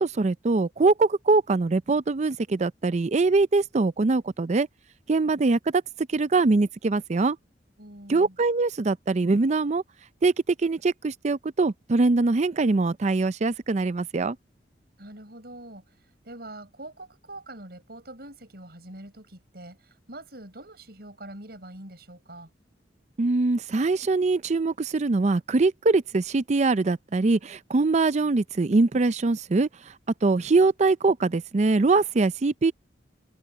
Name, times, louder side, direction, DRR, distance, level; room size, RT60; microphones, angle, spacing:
voice 1, 0.0-4.7 5.1-5.8 6.1-7.4 8.1-9.8 10.2-10.3 10.6-14.4 23.2-29.7 30.2-32.7, right 3 dB, 40° right, 0.5 m, -23 dB
voice 2, 7.8-8.4 15.0-15.8 16.2-22.5, right 1 dB, 60° right, 7.2 m, -44 dB
head